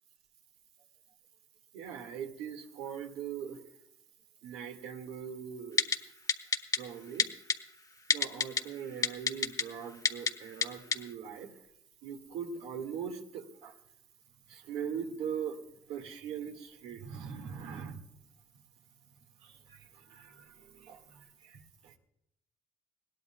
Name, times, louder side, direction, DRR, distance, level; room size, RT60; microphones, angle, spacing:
voice 1, 1.7-3.6 4.4-5.9 6.8-7.3 8.1-11.5 12.0-13.7 14.5-15.6 15.9-18.0 19.4-22.0, right 7 dB, 80° right, 5 dB, 1.9 m, -41 dB
Typing, 5.8-6.0 6.3-6.8 7.2-7.6 8.1-8.6 9.0-9.6 10.1-10.3 10.6-10.7 10.9-11.0, left 5 dB, 35° left, 0.9 m, -26 dB
20.5 x 17.0 x 2.3 m, 0.77 s
cardioid pair, 100°, 10 cm